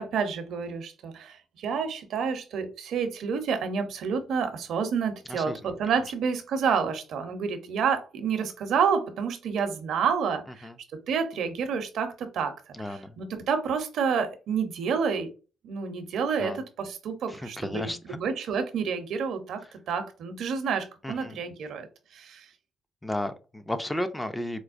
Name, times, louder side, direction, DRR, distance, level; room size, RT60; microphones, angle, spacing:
voice 1, 0.0-10.7 11.1-15.3 15.6-21.9 22.1-22.5, right 6 dB, 75° right, 7 dB, 0.7 m, -29 dB
voice 2, 5.3-5.6 10.6-10.7 12.8-13.1 16.4-16.6 17.3-18.2 21.0-21.4 23.0-24.6, left 1 dB, 10° left, 9 dB, 0.4 m, -33 dB
4.4 x 2.1 x 2.5 m, 0.33 s
cardioid pair, 90°, 0 cm